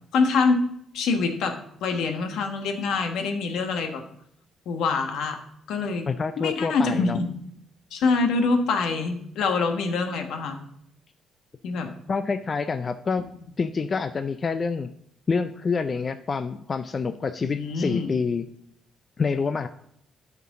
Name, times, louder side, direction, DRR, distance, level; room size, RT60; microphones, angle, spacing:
voice 1, 0.1-0.6 0.9-1.6 1.8-4.0 4.6-5.4 5.7-6.1 6.4-7.3 7.9-10.6 11.6-11.9 17.4-18.1, left 4 dB, 80° left, 6 dB, 1.3 m, -25 dB
voice 2, 6.1-7.2 12.1-13.2 13.6-14.9 15.3-18.5 19.2-19.7, left 5 dB, 40° left, 11 dB, 0.4 m, -27 dB
9.3 x 5.9 x 4.8 m, 0.70 s
cardioid pair, 90°, 0 cm